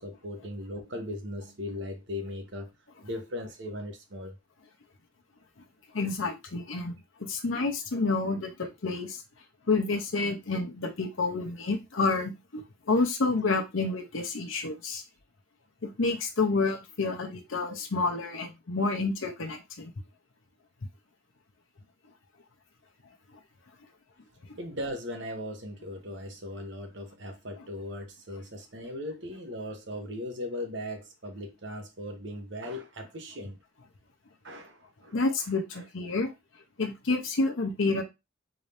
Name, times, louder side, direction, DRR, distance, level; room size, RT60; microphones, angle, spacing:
voice 1, 0.0-2.7 3.0-4.4 24.6-33.6 34.4-35.2 35.7-35.9, left 1 dB, 60° right, 1.0 m, -38 dB
voice 2, 5.9-6.9 7.2-9.2 9.7-15.0 15.8-19.9 35.1-36.3 36.8-38.0, left 3 dB, 80° left, 0.8 m, -29 dB
3.8 x 2.7 x 3.3 m
head